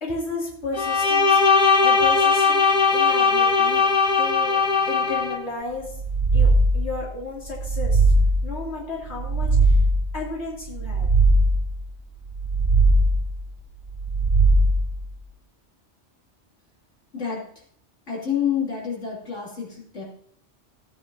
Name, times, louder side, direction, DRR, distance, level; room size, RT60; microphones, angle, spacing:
voice 1, 0.0-1.4 1.8-2.6 2.9-4.5 4.9-5.9 6.3-8.1 8.4-9.8 10.1-11.1, left 3 dB, 65° left, -4 dB, 3.0 m, -33 dB
Bowed string instrument, 0.7-5.4, left 5 dB, 45° left, 1.0 m, -19 dB
sound 1, 5.9-7.0 7.4-8.6 9.0-10.1 10.6-11.7 12.2-13.3 13.9-15.0, right 2 dB, 35° right, 0.9 m, -19 dB
voice 2, 18.1-20.0, left 8 dB, 85° left, -4 dB, 3.1 m, -28 dB
15.5 x 9.3 x 2.7 m, 0.63 s
omnidirectional pair, 1.2 m